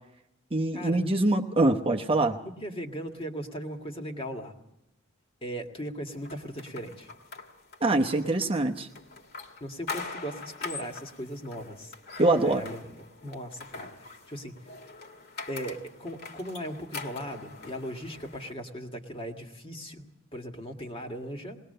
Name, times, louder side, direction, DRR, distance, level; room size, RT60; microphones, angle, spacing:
voice 1, 0.5-2.4 7.8-8.9 12.2-12.7, right 2 dB, 25° right, 3 dB, 0.9 m, -24 dB
voice 2, 2.6-4.5 5.4-7.1 9.6-11.9 12.4-12.9 13.2-14.5 15.5-21.6, equal, 25° left, 3 dB, 1.8 m, -38 dB
sound 1, 6.2-18.5, left 4 dB, 50° left, 2.0 m, -43 dB
20.5 x 19.5 x 6.6 m, 0.87 s
head